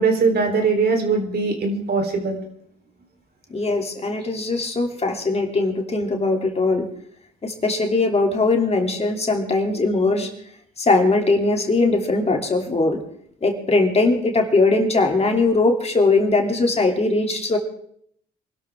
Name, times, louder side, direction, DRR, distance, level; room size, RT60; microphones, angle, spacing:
voice 1, 0.0-2.4, right 4 dB, 55° right, 4 dB, 3.8 m, -21 dB
voice 2, 3.5-6.9 7.4-10.3 10.8-13.0 13.4-17.6, left 3 dB, 30° left, 2 dB, 3.0 m, -20 dB
24.5 x 12.5 x 3.7 m, 0.65 s
cardioid pair, 90°, 20 cm